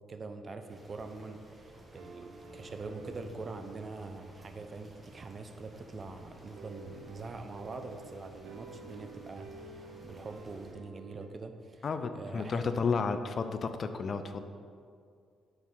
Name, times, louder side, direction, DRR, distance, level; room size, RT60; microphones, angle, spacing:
voice 1, 0.1-11.9 12.1-12.8, right 3 dB, 40° right, 7 dB, 0.6 m, -44 dB
sound 1, 0.7-10.7, right 1 dB, 20° right, 1.3 m, -55 dB
sound 2, 1.6-11.3, right 3 dB, 85° right, 0.7 m, -51 dB
voice 2, 11.8-14.4, left 5 dB, 45° left, 9 dB, 0.5 m, -32 dB
6.5 x 4.6 x 5.4 m, 2.3 s
cardioid pair, 90°, 0 cm